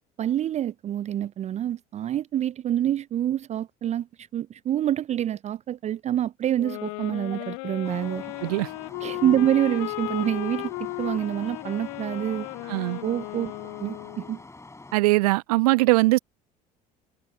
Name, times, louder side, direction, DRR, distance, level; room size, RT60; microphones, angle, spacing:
voice 1, 0.2-8.2 9.0-12.5 13.0-13.5 13.8-14.4, right 11 dB, 35° right, 0.5 m, -27 dB
sound 1, 6.6-14.4, left 37 dB, 60° left, 0.6 m, -35 dB
sound 2, 7.8-15.0, left 2 dB, 15° left, 6.6 m, -46 dB
voice 2, 12.7-13.0 14.9-16.2, right 22 dB, 65° right, 1.3 m, -21 dB
figure-of-eight pair, 60°, 21 cm